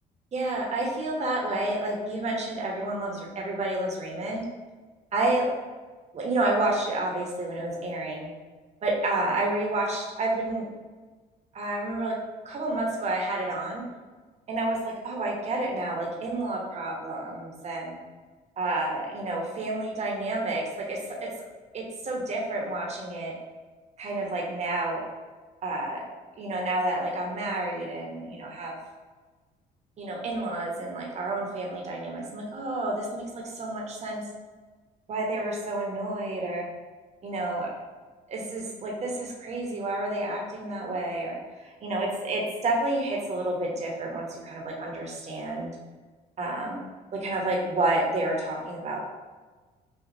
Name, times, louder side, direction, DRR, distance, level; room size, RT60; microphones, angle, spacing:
voice 1, 0.3-4.4 5.1-5.5 6.1-8.3 8.8-10.7 11.5-12.1 12.4-13.8 14.5-17.9 18.6-20.6 20.9-21.3 21.7-23.3 24.0-25.0 25.6-26.0 26.4-28.8 30.0-34.2 35.1-36.7 37.2-37.7 38.3-41.4 41.6-45.7 46.4-46.8 47.1-49.0, right 2 dB, 40° right, -1 dB, 1.0 m, -30 dB
5.9 x 2.4 x 2.7 m, 1.3 s
cardioid pair, 110°, 17 cm